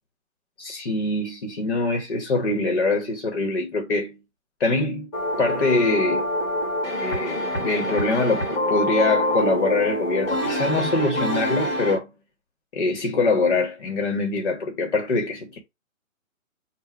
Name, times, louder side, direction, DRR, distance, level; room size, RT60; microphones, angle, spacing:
voice 1, 0.6-4.2 4.6-5.1 5.4-6.3 7.0-12.1 12.7-15.6, left 3 dB, 45° left, 1.0 m, -24 dB
sound 1, 5.1-12.0, left 1 dB, 15° left, 1.2 m, -26 dB
3.6 x 2.2 x 4.3 m
hypercardioid pair, 170°, 41 cm